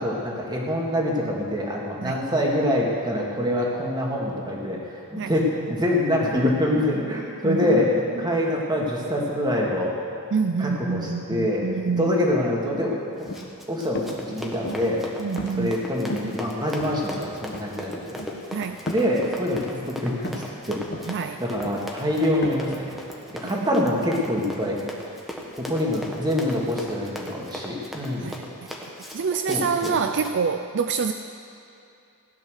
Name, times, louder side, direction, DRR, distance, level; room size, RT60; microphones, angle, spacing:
voice 1, 0.0-10.0 10.6-11.7 12.0-13.0 13.7-15.0 15.6-18.2 18.9-20.8 21.4-22.9 23.3-24.8 25.7-28.3 29.5-29.9, left 1 dB, 20° right, -2 dB, 2.3 m, -25 dB
voice 2, 7.4-7.8 8.1-8.4 10.3-12.1 15.2-15.8 18.5-18.8 21.1-21.4 23.4-23.7 28.2-28.3 29.1-31.1, right 5 dB, 55° right, 8 dB, 0.5 m, -26 dB
sound 1, 13.2-13.5 14.0-14.2 14.6-15.0 15.4-15.8 16.1-16.4 16.8-17.2 17.5-17.7 18.2-18.4 18.9-19.1 19.6-19.8 20.2-20.5 20.9-21.2 21.6-21.9 22.4-22.5, left 1 dB, 50° left, 1.3 m, -34 dB
Run, 13.2-30.4, equal, ahead, 1.5 m, -38 dB
16.5 x 10.5 x 6.6 m, 2.6 s
head